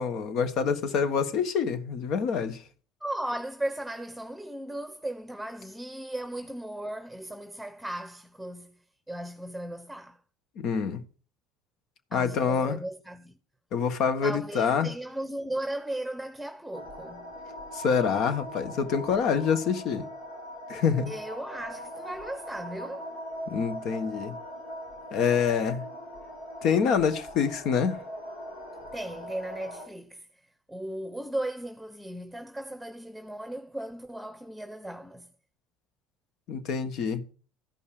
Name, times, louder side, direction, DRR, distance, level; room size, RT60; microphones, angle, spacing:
voice 1, 0.0-2.6 10.6-11.0 12.1-12.8 13.7-14.9 17.7-20.0 20.7-21.1 23.5-24.4 25.1-25.8 26.6-28.0 36.5-37.2, left 6 dB, 60° left, 1.5 m, -26 dB
voice 2, 3.0-8.8 9.1-10.2 12.1-13.3 14.2-17.3 21.1-23.1 25.1-25.2 28.9-30.3 30.7-35.3, right 1 dB, 5° right, 1.0 m, -36 dB
sound 1, 16.7-29.9, equal, 80° left, 4.8 m, -41 dB
13.5 x 5.5 x 6.6 m
hypercardioid pair, 70°, 0 cm